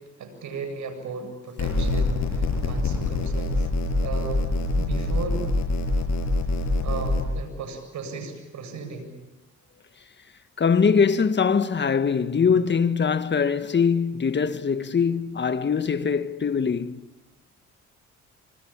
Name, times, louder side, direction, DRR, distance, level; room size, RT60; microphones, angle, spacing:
voice 1, 0.0-3.7 4.0-5.5 5.9-6.0 6.4-9.1, right 4 dB, 70° right, 7.8 m, -36 dB
sound 1, 1.6-7.2, left 2 dB, 65° left, 7.5 m, -24 dB
voice 2, 10.6-17.0, left 6 dB, 35° left, 1.6 m, -22 dB
26.5 x 25.5 x 8.8 m
cardioid pair, 90°, 30 cm